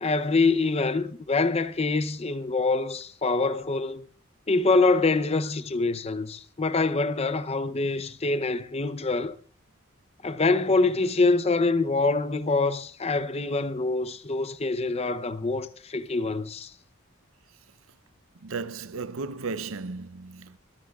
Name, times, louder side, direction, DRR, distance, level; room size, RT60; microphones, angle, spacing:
voice 1, 0.0-4.1 4.5-9.3 10.2-16.7, left 3 dB, 30° left, 0.6 m, -25 dB
voice 2, 18.4-20.6, right 4 dB, 80° right, 0.6 m, -35 dB
24.0 x 14.0 x 2.4 m
head